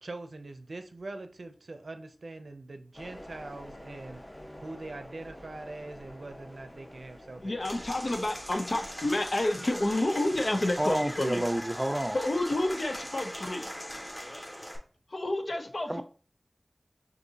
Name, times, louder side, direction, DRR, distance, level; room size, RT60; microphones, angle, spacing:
voice 1, 0.0-4.2 4.6-7.6, right 2 dB, 90° right, 0.6 m, -43 dB
sound 1, 2.9-13.1, left 1 dB, 35° left, 1.1 m, -50 dB
voice 2, 7.4-11.4 12.1-13.7 15.1-16.0, left 1 dB, 70° left, 0.7 m, -29 dB
Applause / Crowd, 7.6-14.8, equal, 20° left, 1.4 m, -40 dB
voice 3, 10.8-12.2 15.9-16.0, right 1 dB, 25° right, 0.4 m, -29 dB
6.4 x 2.6 x 2.8 m
wide cardioid pair, 40°, 0 cm